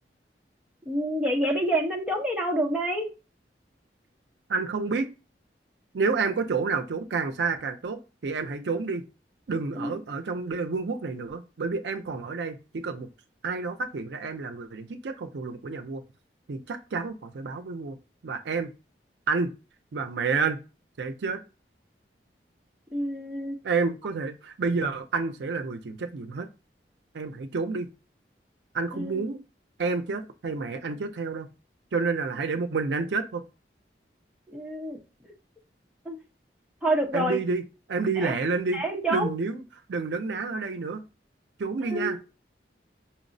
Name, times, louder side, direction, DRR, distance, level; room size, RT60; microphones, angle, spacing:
voice 1, 0.9-3.1 9.8-9.9 22.9-23.6 28.9-29.2 34.5-35.0 36.1-36.2 36.8-37.4 38.2-38.3 38.7-39.3 41.9-42.2, right 1 dB, 5° right, 0.7 m, -27 dB
voice 2, 4.5-5.1 5.9-9.0 9.5-13.1 13.4-16.0 16.5-17.9 18.2-18.7 19.3-19.5 19.9-20.6 21.0-21.4 23.6-26.5 27.1-27.9 28.7-29.4 29.8-31.5 31.9-33.4 37.1-37.6 37.9-38.8 39.1-39.6 39.9-41.0 41.6-42.3, right 4 dB, 80° right, 0.5 m, -29 dB
5.5 x 2.0 x 2.6 m
head